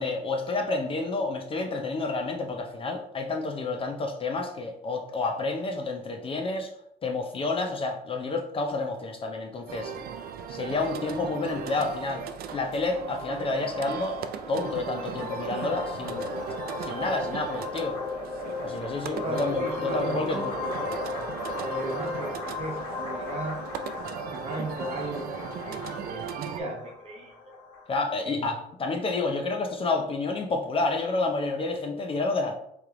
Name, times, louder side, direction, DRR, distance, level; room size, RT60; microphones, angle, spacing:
voice 1, 0.0-6.7 7.0-9.9 10.5-14.2 14.5-16.3 16.8-18.0 18.6-20.5 27.9-32.6, left 3 dB, 35° left, 3 dB, 0.5 m, -29 dB
sound 1, 9.7-26.6, right 8 dB, 65° right, 0.4 m, -38 dB
sound 2, 12.2-27.9, left 4 dB, 85° left, 1.3 m, -37 dB
voice 2, 19.1-20.8 21.6-23.6 24.3-27.3 28.2-28.5, right 2 dB, 40° right, 1 dB, 1.0 m, -36 dB
3.3 x 3.1 x 3.7 m, 0.75 s
cardioid pair, 110°, 17 cm